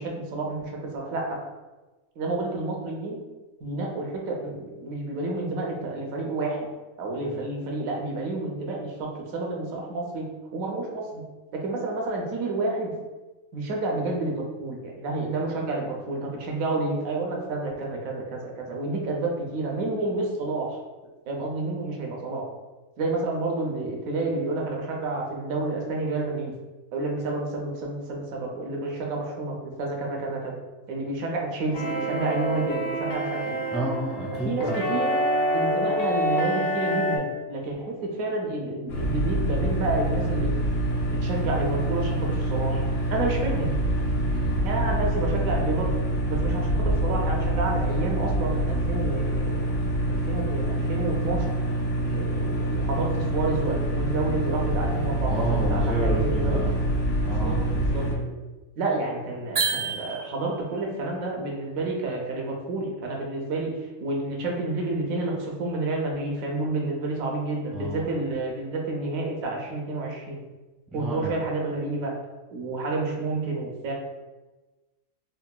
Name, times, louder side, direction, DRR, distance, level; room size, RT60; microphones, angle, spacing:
voice 1, 0.0-1.4 2.2-3.2 3.6-6.7 7.0-10.3 10.5-11.2 11.5-12.9 13.5-20.8 21.3-22.5 23.0-26.5 26.9-30.6 30.9-33.6 34.4-35.2 35.5-40.5 41.2-43.7 44.6-45.9 46.3-49.7 50.1-51.5 51.9-56.6 57.4-58.3 58.8-63.7 64.0-70.4 70.9-72.1 72.5-73.9, right 2 dB, 80° right, 0 dB, 1.0 m, -30 dB
sound 1, 31.7-37.2, equal, 65° left, 0.6 m, -27 dB
voice 2, 33.7-34.8 44.3-44.6 52.1-52.2 55.3-56.7 57.2-57.7 67.7-68.0 70.9-71.3, right 1 dB, ahead, -5 dB, 0.3 m, -30 dB
sound 2, 38.9-58.1, right 1 dB, 85° left, 1.1 m, -26 dB
sound 3, 59.5-60.7, right 5 dB, 65° right, 0.6 m, -28 dB
3.7 x 2.1 x 2.2 m, 1.2 s
omnidirectional pair, 1.5 m